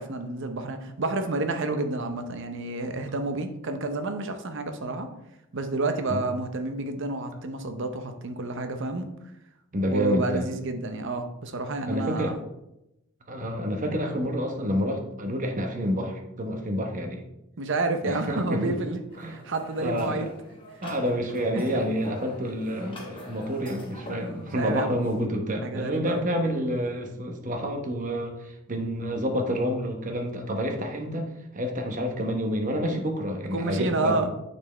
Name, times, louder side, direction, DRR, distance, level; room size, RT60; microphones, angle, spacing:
voice 1, 0.0-5.1 5.5-9.1 9.9-12.4 17.6-19.0 19.3-20.3 21.7-21.8 24.5-24.9 25.6-26.2 33.5-34.3, right 2 dB, 60° right, 7 dB, 0.7 m, -29 dB
voice 2, 9.7-10.5 11.9-12.3 13.3-17.2 18.0-18.8 19.2-19.4 19.8-20.3 20.8-31.3 31.5-34.3, equal, 40° right, 3 dB, 1.0 m, -28 dB
sound 1, 19.1-25.2, left 1 dB, 25° left, 1.1 m, -45 dB
8.9 x 4.4 x 3.3 m, 0.88 s
head